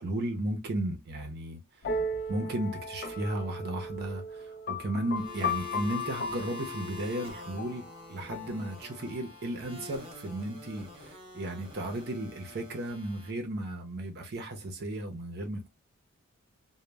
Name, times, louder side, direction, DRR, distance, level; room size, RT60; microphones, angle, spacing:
voice 1, 0.0-1.9 2.3-15.7, right 1 dB, 50° right, 0.6 m, -35 dB
sound 1, 1.8-9.4, left 2 dB, 45° left, 0.4 m, -37 dB
sound 2, 5.2-13.3, left 2 dB, 25° right, 0.9 m, -47 dB
2.1 x 2.0 x 3.2 m
head